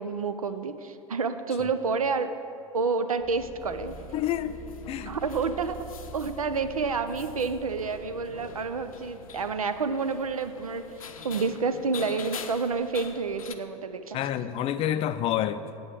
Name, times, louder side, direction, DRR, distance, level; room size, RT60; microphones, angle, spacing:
voice 1, 0.0-2.3 2.7-3.9 5.1-5.8 6.1-10.8 11.2-14.2, right 4 dB, 80° right, 11 dB, 0.5 m, -29 dB
sound 1, 3.2-11.1, right 2 dB, 15° right, 1.3 m, -47 dB
sound 2, 3.6-13.6, left 5 dB, 75° left, 0.6 m, -45 dB
voice 2, 4.1-4.6 4.9-5.2 14.1-15.8, left 11 dB, 35° left, 12 dB, 0.4 m, -28 dB
7.8 x 7.8 x 7.3 m, 2.6 s
figure-of-eight pair, 80°, 18 cm